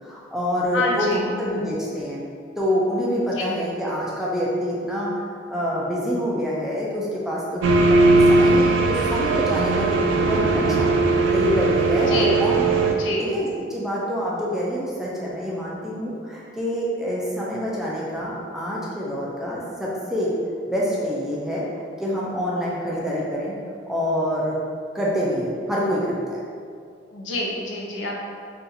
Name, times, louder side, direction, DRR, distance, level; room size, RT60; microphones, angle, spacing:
voice 1, 0.0-2.2 2.6-5.1 5.5-10.9 11.3-20.4 20.7-21.7 22.0-23.6 23.9-24.6 24.9-26.4, equal, ahead, -6 dB, 0.4 m, -26 dB
voice 2, 0.7-1.3 3.3-3.4 12.1-12.5 12.9-13.3 27.1-28.2, left 2 dB, 85° left, -2 dB, 0.6 m, -27 dB
sound 1, 7.6-12.9, right 3 dB, 85° right, 0.3 m, -19 dB
2.7 x 2.4 x 3.8 m, 2.2 s
head